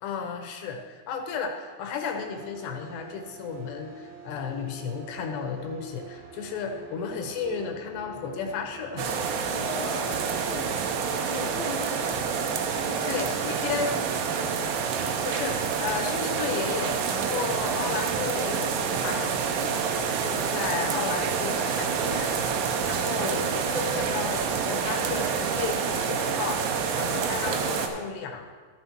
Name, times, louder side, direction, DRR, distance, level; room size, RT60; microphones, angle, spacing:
voice 1, 0.0-9.2 13.1-13.9 15.2-19.8 20.2-22.4 22.9-28.5, left 6 dB, 75° left, 4 dB, 2.8 m, -33 dB
sound 1, 2.1-9.5, right 6 dB, 55° right, 3.1 m, -46 dB
sound 2, 9.0-27.9, right 6 dB, 80° right, 3.1 m, -28 dB
voice 2, 9.5-10.8 11.3-12.3 12.7-14.4, left 3 dB, 60° left, -4 dB, 1.8 m, -38 dB
13.0 x 6.9 x 4.5 m, 1.5 s
omnidirectional pair, 5.3 m